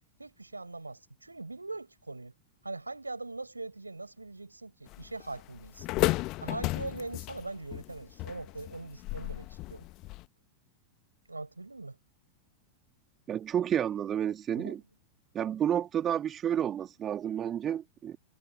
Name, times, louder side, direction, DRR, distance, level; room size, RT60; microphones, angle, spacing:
voice 1, 0.2-2.3 2.6-5.9 6.4-9.8 11.3-12.0 14.5-14.8, right 2 dB, 80° right, 6.7 m, -41 dB
sound 1, 4.9-10.3, left 21 dB, 40° left, 1.4 m, -34 dB
voice 2, 13.3-14.8 15.3-18.2, right 9 dB, 25° right, 2.8 m, -30 dB
figure-of-eight pair, 90°, 0 cm